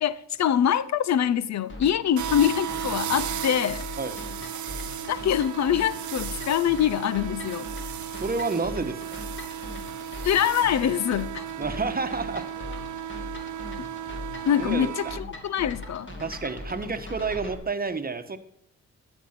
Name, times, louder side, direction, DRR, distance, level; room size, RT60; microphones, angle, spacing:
voice 1, 0.0-3.8 5.0-7.7 10.2-11.4 14.5-16.1, left 9 dB, 60° left, 0.6 m, -24 dB
sound 1, 1.7-17.6, left 2 dB, 40° left, 2.5 m, -40 dB
sound 2, 2.2-15.2, right 10 dB, 70° right, 0.9 m, -35 dB
voice 2, 8.1-9.2 11.6-12.5 13.2-13.3 14.6-14.9 16.2-18.4, right 4 dB, 30° right, 1.2 m, -30 dB
12.0 x 5.4 x 5.8 m
supercardioid pair, 55°, 30 cm